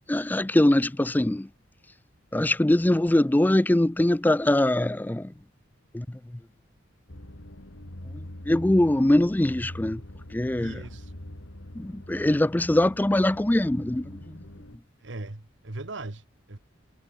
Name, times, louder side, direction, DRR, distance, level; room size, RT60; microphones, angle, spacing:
voice 1, 0.1-1.5 2.3-5.3 5.9-6.1 8.1-10.0 10.3-10.7 11.8-14.4, left 1 dB, 10° left, 0.4 m, -22 dB
sound 1, 7.1-14.8, left 1 dB, 75° left, 3.1 m, -43 dB
voice 2, 10.6-11.1 15.0-16.6, right 2 dB, 65° right, 1.5 m, -39 dB
head